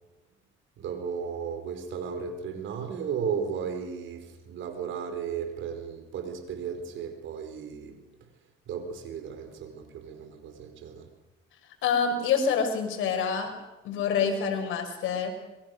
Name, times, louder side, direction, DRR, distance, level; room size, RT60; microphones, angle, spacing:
voice 1, 0.8-8.0 8.7-11.1, right 6 dB, 80° right, 8 dB, 4.4 m, -35 dB
voice 2, 11.8-13.5 13.8-15.3, left 6 dB, 85° left, 4 dB, 5.2 m, -26 dB
26.5 x 22.5 x 6.7 m, 0.97 s
cardioid pair, 90°, 20 cm